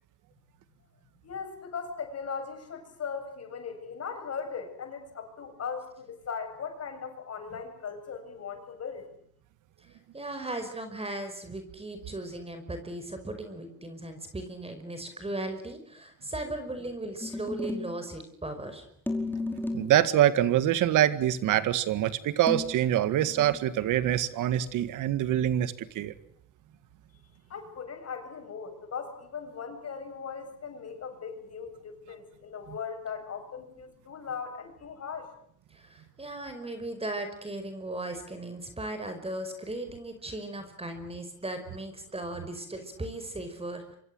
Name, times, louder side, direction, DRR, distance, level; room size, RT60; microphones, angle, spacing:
voice 1, 1.2-9.0 27.5-35.3, left 6 dB, 55° left, 6 dB, 7.9 m, -38 dB
voice 2, 10.1-18.9 35.7-44.0, right 1 dB, 20° right, 8 dB, 5.3 m, -37 dB
sound 1, 17.2-18.0 19.1-20.0 22.5-23.6, left 2 dB, 5° left, 5.3 m, -34 dB
voice 3, 19.7-26.1, right 12 dB, 85° right, 13 dB, 1.9 m, -25 dB
27.5 x 25.0 x 7.9 m, 0.65 s
cardioid pair, 90°, 30 cm